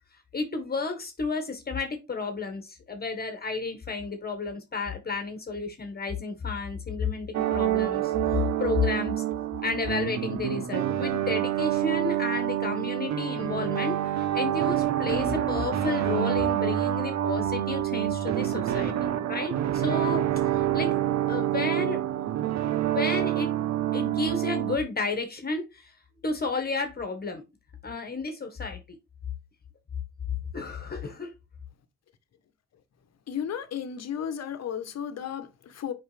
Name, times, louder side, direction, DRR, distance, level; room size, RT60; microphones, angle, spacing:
voice 1, 0.3-9.2 9.6-20.2 20.5-21.0 21.3-22.0 22.9-23.5 23.9-25.9 26.2-27.4 27.8-29.0 30.5-31.3, left 4 dB, 30° left, 1.6 m, -32 dB
sound 1, 7.3-24.8, right 12 dB, 65° right, 0.8 m, -27 dB
voice 2, 33.3-35.9, left 8 dB, 60° left, 1.2 m, -34 dB
5.5 x 5.3 x 3.4 m
cardioid pair, 90°, 30 cm